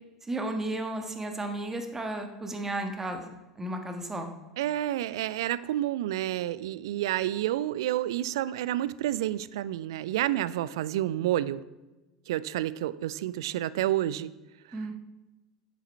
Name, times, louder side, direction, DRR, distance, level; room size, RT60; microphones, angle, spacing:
voice 1, 0.3-3.3 3.6-4.3 14.7-14.9, right 1 dB, 15° right, 5 dB, 1.4 m, -33 dB
voice 2, 4.6-11.6 12.3-14.3, right 13 dB, 65° right, 19 dB, 0.3 m, -29 dB
8.3 x 7.4 x 4.6 m, 1.1 s
figure-of-eight pair, 75°, 3 cm